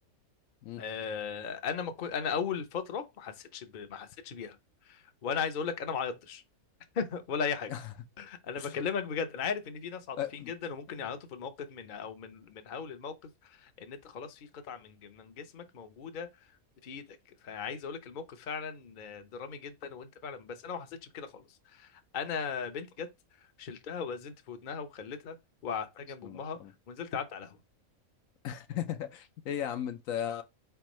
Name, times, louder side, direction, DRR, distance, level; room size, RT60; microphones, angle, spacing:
voice 1, 0.8-4.6 4.9-6.4 6.9-7.7 8.2-10.2 10.5-13.1 13.4-16.3 16.8-17.1 17.4-21.4 21.7-23.1 23.6-25.4 25.6-26.6 26.9-27.6, left 6 dB, 45° left, 0.7 m, -37 dB
voice 2, 10.2-10.5 11.0-11.1 26.2-26.7 28.4-30.4, left 10 dB, 75° left, 1.0 m, -36 dB
4.5 x 3.4 x 3.0 m
omnidirectional pair, 1.5 m